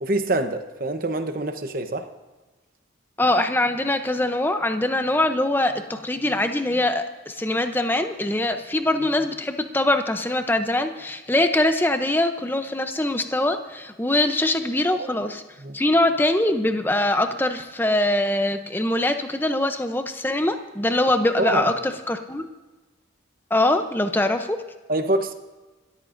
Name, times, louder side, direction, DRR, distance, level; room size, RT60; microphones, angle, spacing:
voice 1, 0.0-2.1 14.9-15.1 15.6-15.8 21.4-21.7 24.9-25.3, right 2 dB, 45° right, 7 dB, 1.0 m, -25 dB
voice 2, 3.2-15.4 15.7-22.5 23.5-24.6, left 1 dB, 10° left, 7 dB, 0.7 m, -23 dB
28.0 x 13.5 x 2.6 m, 1.2 s
head